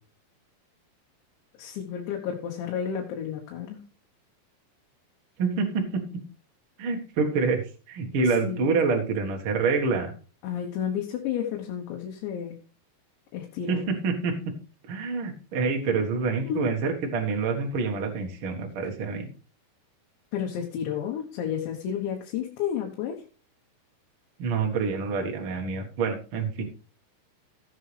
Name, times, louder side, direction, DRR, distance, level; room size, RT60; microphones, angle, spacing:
voice 1, 1.6-3.8 8.2-8.8 10.4-12.6 13.3-13.8 16.4-16.7 20.3-23.2, left 8 dB, 90° left, 0 dB, 3.4 m, -31 dB
voice 2, 5.4-6.0 6.8-10.1 13.7-14.5 14.9-19.3 24.4-26.6, right 4 dB, 70° right, 2 dB, 1.3 m, -27 dB
16.5 x 7.5 x 3.3 m, 0.36 s
omnidirectional pair, 5.0 m